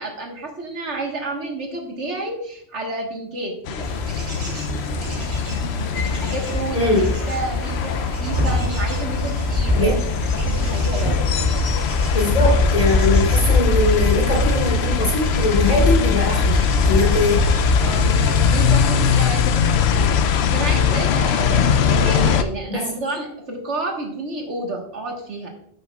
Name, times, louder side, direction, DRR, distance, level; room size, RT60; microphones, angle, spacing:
voice 1, 0.0-3.9 6.1-11.3 17.8-25.5, right 2 dB, 70° right, 1 dB, 1.8 m, -30 dB
sound 1, 3.7-22.4, left 7 dB, 65° left, 0.8 m, -22 dB
Bird / Insect / Wind, 3.8-18.8, left 2 dB, 45° right, 2.7 m, -24 dB
sound 2, 6.5-7.4 7.7-11.3 11.7-12.8 13.2-13.5 13.9-14.3 15.1-18.6 18.8-19.2, left 1 dB, 10° right, 2.3 m, -27 dB
voice 2, 6.7-7.1 9.8-9.9 12.1-17.4 22.7-22.9, left 2 dB, 30° left, -3 dB, 3.4 m, -21 dB
15.0 x 6.3 x 2.3 m, 0.70 s
omnidirectional pair, 1.2 m